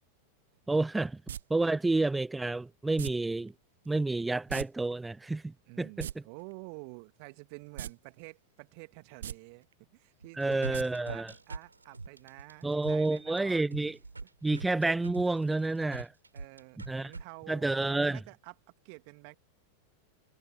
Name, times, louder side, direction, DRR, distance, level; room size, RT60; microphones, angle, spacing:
voice 1, 0.7-1.2 1.5-3.5 3.9-6.1 10.4-11.3 12.6-14.0 14.4-16.1 16.9-17.1 17.5-18.2, right 2 dB, 10° right, 0.6 m, -29 dB
sound 1, 1.3-1.4 3.0-3.1 4.5-4.7 4.9-5.0 5.8-6.1 7.7-7.9 8.3-8.4 9.1-9.3 10.7-10.8 11.2-11.3, right 10 dB, 60° right, 0.3 m, -37 dB
voice 2, 5.7-14.3 16.3-18.5 18.8-19.4, right 38 dB, 45° right, 2.2 m, -50 dB
sound 2, 10.2-17.2, right 3 dB, 80° right, 5.7 m, -43 dB
figure-of-eight pair, 90°, 0 cm